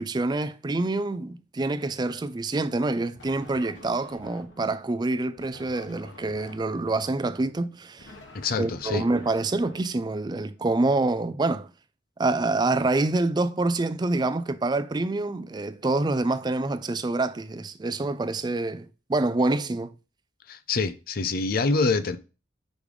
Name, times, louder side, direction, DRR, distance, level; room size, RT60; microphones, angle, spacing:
voice 1, 0.0-8.1 8.6-11.7 12.2-19.9, right 2 dB, 25° right, 0.4 m, -26 dB
sound 1, 3.2-4.8 5.4-10.5, left 2 dB, 85° left, 1.7 m, -49 dB
voice 2, 8.3-9.1 20.5-22.2, left 3 dB, 55° left, 0.5 m, -26 dB
5.2 x 5.1 x 4.9 m
head